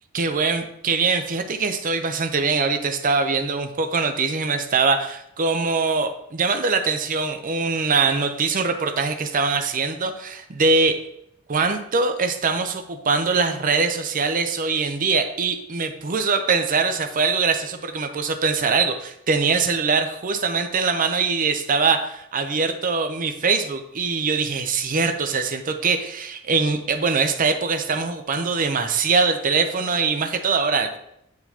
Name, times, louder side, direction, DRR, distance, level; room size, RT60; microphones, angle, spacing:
voice 1, 0.1-11.0 11.5-31.0, right 4 dB, 40° right, 7 dB, 0.6 m, -22 dB
7.9 x 4.6 x 2.8 m, 0.78 s
head